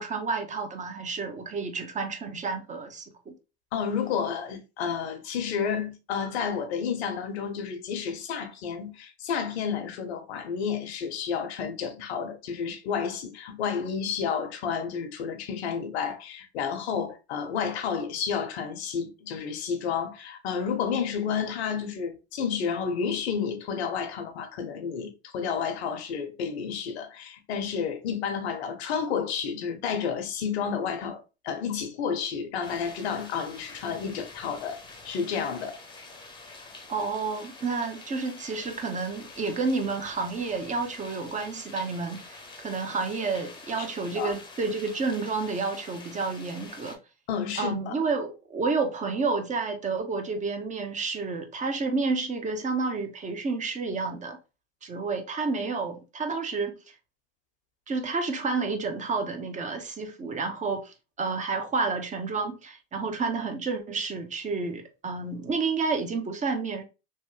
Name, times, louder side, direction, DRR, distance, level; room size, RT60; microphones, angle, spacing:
voice 1, 0.0-3.3 36.9-47.0 47.6-54.4 54.8-56.9 57.9-66.8, right 4 dB, 25° right, 0.7 m, -30 dB
voice 2, 3.7-31.2 31.4-34.8 35.0-35.8 44.2-44.3 47.3-47.9, left 6 dB, 85° left, 0.8 m, -31 dB
sound 1, 32.6-47.0, left 3 dB, 15° left, 0.7 m, -47 dB
3.0 x 2.2 x 3.1 m
hypercardioid pair, 95°, 32 cm